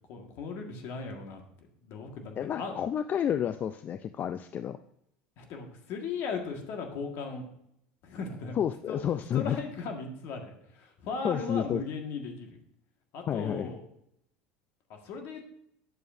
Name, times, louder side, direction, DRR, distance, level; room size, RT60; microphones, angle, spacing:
voice 1, 0.1-1.4 1.8-2.8 5.4-7.4 8.0-8.6 8.9-9.0 9.3-12.5 13.1-13.8 14.9-15.5, left 4 dB, 60° left, 3 dB, 1.7 m, -37 dB
voice 2, 2.4-4.8 8.5-9.6 11.2-11.8 13.3-13.7, left 9 dB, 40° left, 11 dB, 0.4 m, -30 dB
9.6 x 7.1 x 2.7 m, 0.75 s
supercardioid pair, 105°, 5 cm